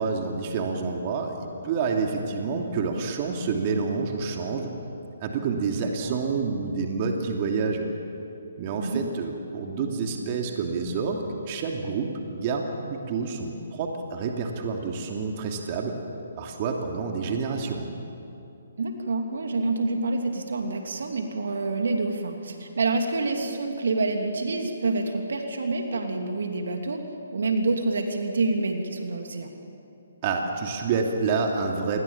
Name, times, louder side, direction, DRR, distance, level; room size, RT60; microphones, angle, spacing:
voice 1, 0.0-4.7 5.2-7.9 8.6-16.0 16.4-17.9 30.2-32.0, right 4 dB, 35° right, 2 dB, 2.9 m, -28 dB
voice 2, 5.8-6.1 8.8-9.0 18.8-27.0 27.3-29.5, right 3 dB, 65° right, 4 dB, 2.9 m, -27 dB
28.0 x 22.5 x 7.4 m, 2.7 s
figure-of-eight pair, 140°, 0 cm